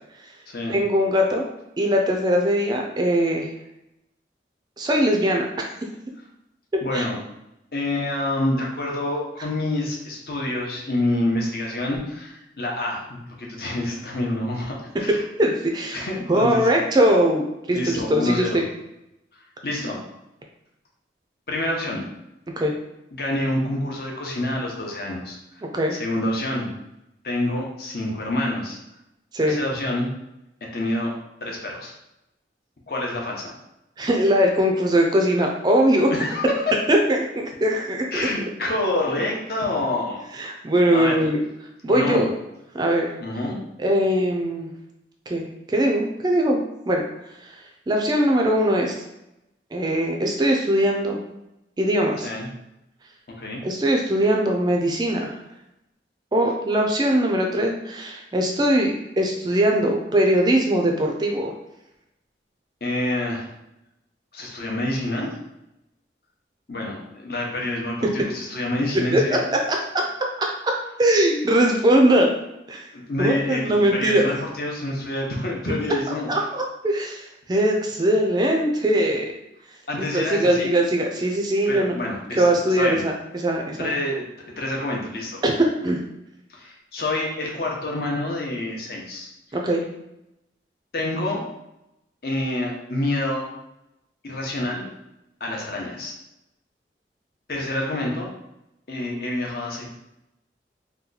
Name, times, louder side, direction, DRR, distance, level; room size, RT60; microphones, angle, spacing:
voice 1, 0.7-1.4 1.8-3.5 4.8-5.7 6.7-7.1 15.4-18.6 22.6-22.7 25.7-26.0 29.3-29.6 34.0-36.1 36.9-38.0 39.2-39.3 40.4-41.4 41.8-42.3 42.7-43.1 43.8-44.7 45.3-46.6 46.9-47.0 47.4-47.5 47.9-49.0 49.7-51.2 51.8-52.3 53.6-55.3 56.3-61.5 69.1-69.4 69.7-70.0 70.4-72.3 72.7-72.8 73.2-74.2 76.3-79.3 80.0-82.0 82.4-84.0 85.4-86.0 89.5-89.8, right 1 dB, 25° right, 1 dB, 0.3 m, -21 dB
voice 2, 6.8-7.2 7.7-15.2 15.9-16.8 17.7-18.6 19.6-20.0 21.5-22.1 23.1-25.6 25.9-26.7 27.2-28.8 29.4-30.1 30.6-31.1 31.4-31.9 32.9-33.5 36.1-36.7 38.1-40.3 40.9-41.2 41.9-42.3 43.2-43.6 52.2-52.5 53.3-53.6 62.8-63.5 64.3-65.4 66.7-69.5 72.9-76.3 79.9-80.8 81.7-82.5 82.7-83.0 83.8-85.4 86.5-89.3 90.9-91.5 92.2-93.5 94.2-94.9 95.4-96.1 97.5-98.3 98.9-99.9, left 1 dB, 55° left, -1 dB, 0.7 m, -27 dB
2.8 x 2.2 x 3.8 m, 0.87 s
head